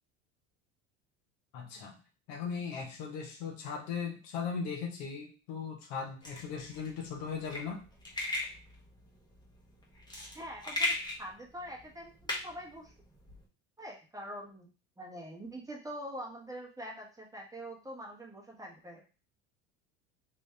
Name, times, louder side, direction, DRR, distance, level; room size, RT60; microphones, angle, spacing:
voice 1, 1.5-2.0 2.3-7.8, left 6 dB, 75° left, 1 dB, 1.2 m, -38 dB
sound 1, 6.2-13.4, left 2 dB, 10° left, 1.0 m, -38 dB
voice 2, 10.3-12.9 13.8-14.7 15.0-19.0, equal, 10° right, -2 dB, 1.1 m, -44 dB
3.5 x 2.6 x 3.3 m, 0.35 s
supercardioid pair, 90°, 37 cm